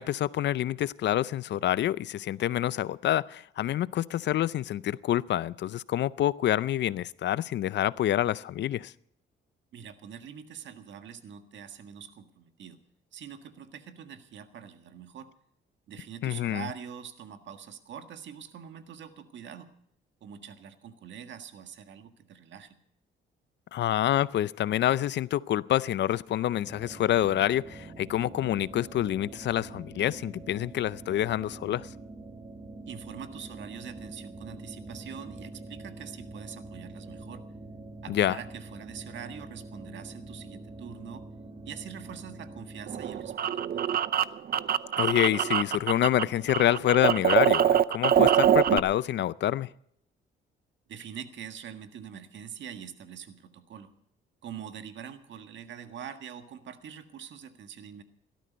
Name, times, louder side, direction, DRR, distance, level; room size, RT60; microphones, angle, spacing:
voice 1, 0.0-8.9 16.2-16.7 23.7-31.9 38.1-38.4 45.0-49.7, left 12 dB, 65° left, 0.5 m, -27 dB
voice 2, 9.7-12.8 13.1-15.3 15.9-19.7 20.2-22.8 32.9-37.5 38.0-41.2 41.6-44.0 50.9-53.9 54.4-58.0, right 8 dB, 65° right, 1.7 m, -44 dB
sound 1, 26.6-43.3, right 2 dB, 30° right, 2.3 m, -45 dB
sound 2, 42.9-46.2 46.5-48.8, right 9 dB, 50° right, 0.7 m, -24 dB
17.0 x 13.5 x 5.2 m
cardioid pair, 90°, 20 cm